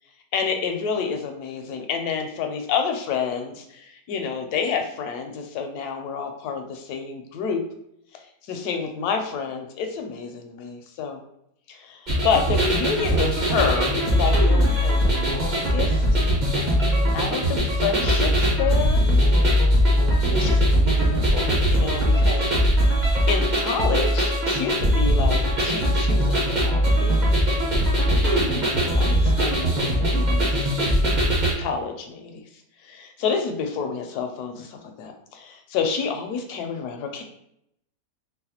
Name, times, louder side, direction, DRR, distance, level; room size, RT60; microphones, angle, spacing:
voice 1, 0.3-7.6 8.1-11.2 11.7-16.1 17.1-19.1 20.3-22.9 23.3-27.2 27.5-27.8 28.7-31.1 31.6-32.5 32.8-37.2, left 6 dB, 75° left, 4 dB, 1.0 m, -29 dB
sound 1, 12.1-31.5, equal, 35° right, 0.7 m, -20 dB
3.9 x 2.2 x 2.8 m, 0.75 s
omnidirectional pair, 1.8 m